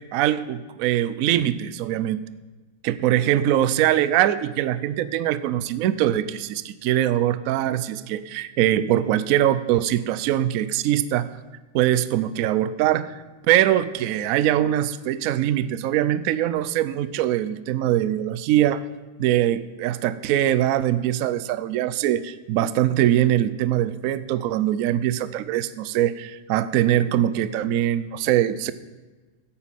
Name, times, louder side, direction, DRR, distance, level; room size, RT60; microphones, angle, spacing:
voice 1, 0.0-2.2 2.8-11.3 11.7-13.1 13.5-18.8 19.2-28.7, right 12 dB, 80° right, 15 dB, 0.7 m, -22 dB
10.5 x 8.7 x 5.7 m, 1.3 s
omnidirectional pair, 2.0 m